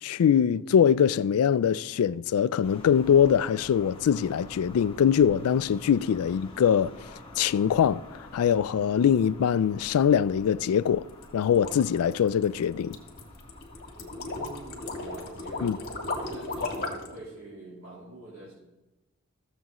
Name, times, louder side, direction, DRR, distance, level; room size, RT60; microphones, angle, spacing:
voice 1, 0.0-6.9 7.4-8.0 8.3-11.0 11.3-13.0 15.6-15.8, left 8 dB, 85° left, 0.3 m, -23 dB
sound 1, 2.6-16.6, left 1 dB, 25° left, 1.3 m, -48 dB
sound 2, 11.1-17.1, left 2 dB, 50° left, 1.7 m, -35 dB
voice 2, 13.9-15.7 16.1-18.5, right 1 dB, 70° right, 2.9 m, -45 dB
14.5 x 7.4 x 3.0 m
head